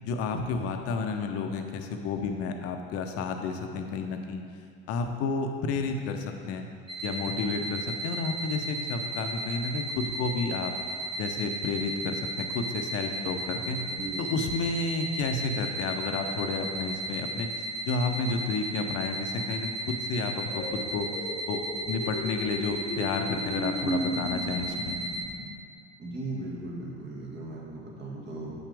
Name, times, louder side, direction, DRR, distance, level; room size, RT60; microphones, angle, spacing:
voice 1, 0.0-4.4 4.9-6.7 7.0-10.7 11.2-13.8 14.2-17.5 17.9-21.1 21.5-25.0, left 4 dB, 45° left, 5 dB, 0.7 m, -31 dB
sound 1, 6.9-25.2, right 1 dB, 15° right, 1.1 m, -35 dB
voice 2, 13.9-14.5 26.0-28.5, right 2 dB, 30° right, -4 dB, 1.8 m, -37 dB
sound 2, 20.5-25.5, equal, 25° left, 1.2 m, -36 dB
7.9 x 5.7 x 3.4 m, 2.3 s
figure-of-eight pair, 75°, 33 cm